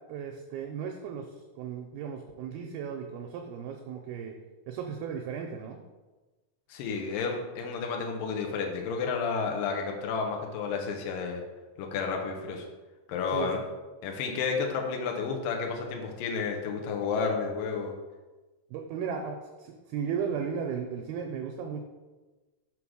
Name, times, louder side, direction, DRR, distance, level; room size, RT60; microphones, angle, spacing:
voice 1, 0.1-1.3 1.6-4.3 4.7-5.8 13.3-13.5 18.7-21.8, right 7 dB, 80° right, 3 dB, 2.3 m, -35 dB
voice 2, 6.7-11.4 11.8-12.7 13.1-13.6 14.0-17.9, left 5 dB, 75° left, 2 dB, 2.1 m, -31 dB
6.3 x 3.8 x 6.1 m, 1.2 s
omnidirectional pair, 4.8 m